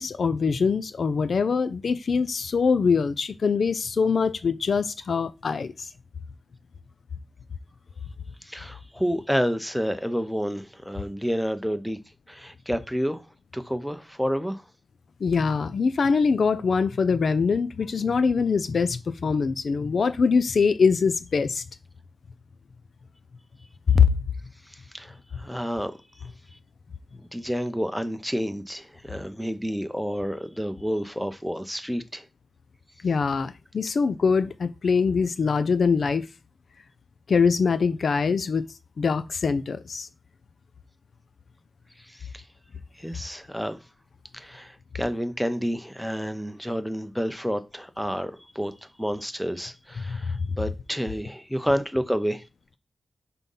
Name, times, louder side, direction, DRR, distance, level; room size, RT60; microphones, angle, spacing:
voice 1, 0.0-5.9 15.2-21.6 23.9-24.1 33.0-36.3 37.3-38.7 39.0-40.1 50.1-50.2, left 5 dB, 70° left, 0.4 m, -23 dB
voice 2, 8.4-12.0 12.3-13.2 13.5-14.6 24.7-25.9 27.3-32.2 42.0-42.4 43.0-43.8 44.3-52.4, equal, ahead, 0.7 m, -29 dB
5.7 x 3.7 x 5.4 m
wide cardioid pair, 105°, 0 cm